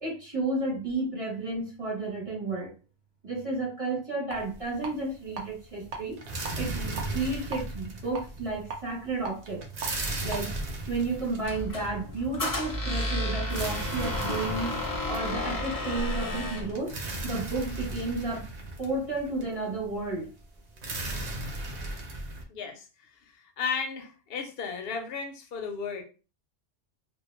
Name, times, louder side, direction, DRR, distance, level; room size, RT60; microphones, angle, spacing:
voice 1, 0.0-2.7 3.2-6.2 6.6-9.6 10.2-10.6 10.9-14.8 15.1-17.0 17.2-18.5 18.8-20.3, right 3 dB, 30° right, -3 dB, 0.8 m, -32 dB
sound 1, 4.3-5.0 5.3-22.4, right 2 dB, 55° right, 0.5 m, -36 dB
sound 2, 4.3-4.4 4.8-5.4 5.8-6.0 6.4-7.6 8.1-9.9 10.3-10.4, right 4 dB, 80° right, 1.0 m, -37 dB
Squeak, 11.4-16.7, left 1 dB, 25° left, 0.5 m, -32 dB
voice 2, 22.5-22.9 23.2-26.0, left 5 dB, 60° left, 5 dB, 0.7 m, -34 dB
2.2 x 2.1 x 3.0 m, 0.33 s
omnidirectional pair, 1.3 m